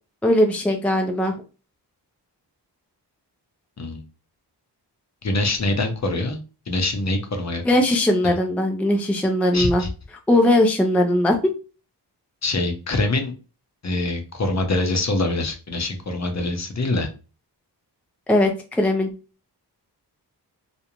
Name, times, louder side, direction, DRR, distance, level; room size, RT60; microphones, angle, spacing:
voice 1, 0.2-1.3 7.6-9.8 10.3-11.4 18.3-19.1, left 1 dB, 5° left, 4 dB, 0.4 m, -19 dB
voice 2, 5.2-6.4 6.7-7.6 8.2-8.4 9.5-9.9 12.4-13.3 13.8-17.1, left 2 dB, 40° left, 5 dB, 0.7 m, -24 dB
2.5 x 2.1 x 2.9 m, 0.33 s
cardioid pair, 60°, 42 cm